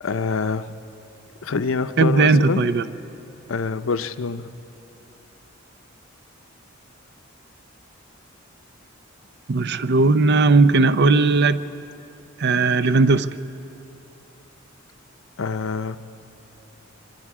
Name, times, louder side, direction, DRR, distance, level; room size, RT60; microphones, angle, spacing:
voice 1, 0.0-0.8 1.4-2.7 3.5-4.6 15.4-16.0, left 4 dB, 80° left, 11 dB, 0.7 m, -26 dB
voice 2, 2.0-2.8 9.5-11.6 12.4-13.3, right 3 dB, 55° right, 13 dB, 0.6 m, -17 dB
25.5 x 24.0 x 4.8 m, 2.9 s
head